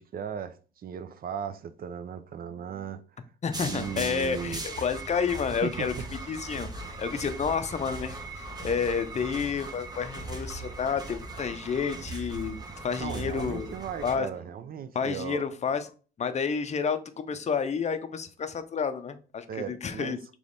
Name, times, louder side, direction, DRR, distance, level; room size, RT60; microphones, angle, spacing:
voice 1, 0.0-3.0 3.6-4.6 5.6-5.9 13.0-15.4 19.5-20.2, right 8 dB, 50° right, 0.5 m, -36 dB
voice 2, 3.4-5.9 6.3-8.2 8.6-13.7 14.0-14.3 14.9-15.9 16.2-20.2, left 6 dB, 35° left, 0.6 m, -30 dB
sound 1, 3.5-14.2, right 2 dB, 20° right, 0.9 m, -39 dB
3.3 x 3.1 x 3.9 m
cardioid pair, 90°, 20 cm